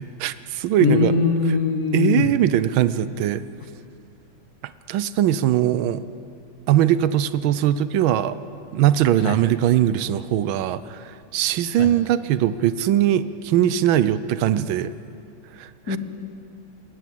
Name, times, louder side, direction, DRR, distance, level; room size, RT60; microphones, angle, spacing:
voice 1, 0.2-1.1 1.9-3.4 4.9-6.0 6.7-8.4 8.7-14.9 15.6-16.0, right 11 dB, 75° right, 15 dB, 1.4 m, -21 dB
voice 2, 0.8-2.3 9.2-9.4 11.8-11.9 15.9-16.0, left 5 dB, 50° left, 7 dB, 1.8 m, -21 dB
19.0 x 18.0 x 7.7 m, 2.6 s
omnidirectional pair, 2.3 m